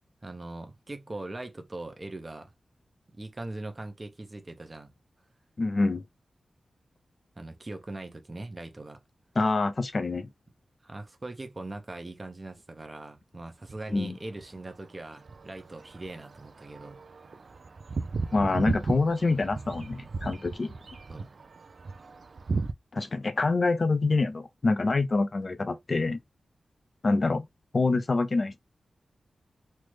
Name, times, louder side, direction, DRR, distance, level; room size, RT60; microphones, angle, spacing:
voice 1, 0.2-2.5 3.1-4.9 7.4-9.0 10.8-17.0 17.3-17.6 21.1-21.3, right 2 dB, 35° right, 0.7 m, -41 dB
voice 2, 5.6-6.0 9.4-10.3 13.9-14.1 18.3-20.7 22.9-26.2 27.0-27.4 27.7-28.6, left 3 dB, 50° left, 0.5 m, -26 dB
sound 1, 13.7-14.0 14.4-22.7, right 4 dB, 65° right, 0.3 m, -36 dB
3.2 x 2.0 x 3.1 m
cardioid pair, 40°, 0 cm